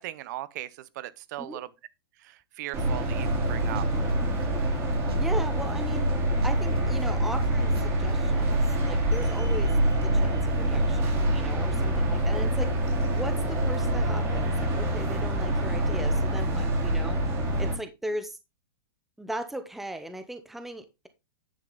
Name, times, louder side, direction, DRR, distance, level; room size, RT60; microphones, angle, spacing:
voice 1, 0.0-1.7 2.2-3.8, right 15 dB, 50° right, 0.9 m, -38 dB
sound 1, 2.7-17.7, right 1 dB, 25° right, 3.7 m, -25 dB
sound 2, 3.1-3.4 3.7-6.1 6.4-8.2, right 6 dB, 85° right, 1.5 m, -42 dB
voice 2, 5.2-6.1 6.4-9.7 10.0-12.9 13.1-17.2 17.6-18.4 19.2-21.1, right 1 dB, ahead, 0.8 m, -37 dB
10.0 x 6.8 x 3.9 m
hypercardioid pair, 155°, 13 cm